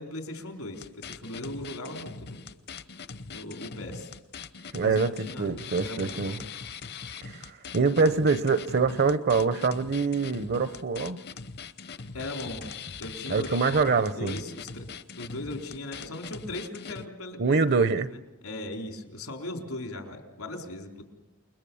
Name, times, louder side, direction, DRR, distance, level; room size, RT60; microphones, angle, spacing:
voice 1, 0.0-2.4 3.3-4.1 4.8-6.4 12.1-12.7 13.0-14.9 15.2-17.6 18.1-21.0, left 1 dB, 85° left, 4.1 m, -38 dB
sound 1, 0.7-17.1, left 5 dB, 50° left, 0.9 m, -42 dB
voice 2, 4.7-6.3 7.2-11.2 13.3-14.4 17.4-18.1, right 4 dB, 50° right, 0.8 m, -25 dB
29.0 x 21.5 x 7.1 m
head